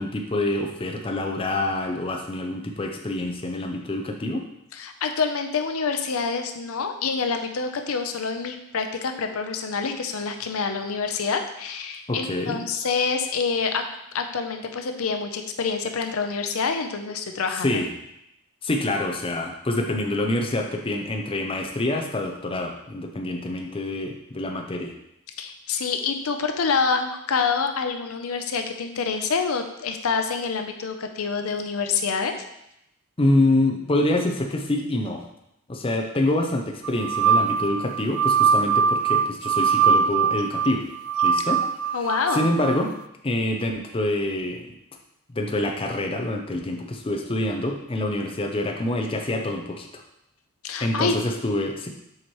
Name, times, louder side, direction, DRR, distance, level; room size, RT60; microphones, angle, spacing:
voice 1, 0.0-4.4 12.1-12.6 17.6-17.9 18.6-24.9 33.2-35.2 35.7-40.8 41.2-41.6 41.9-42.9 43.2-44.6 45.3-50.0 50.8-51.9, left 1 dB, 25° left, 2 dB, 0.5 m, -26 dB
voice 2, 4.7-13.8 14.1-17.8 25.4-32.3 41.9-42.5 50.6-51.2, left 5 dB, 80° left, 6 dB, 0.6 m, -27 dB
sound 1, 36.8-42.8, right 6 dB, 80° right, 0.3 m, -22 dB
7.4 x 4.4 x 3.1 m, 0.82 s
head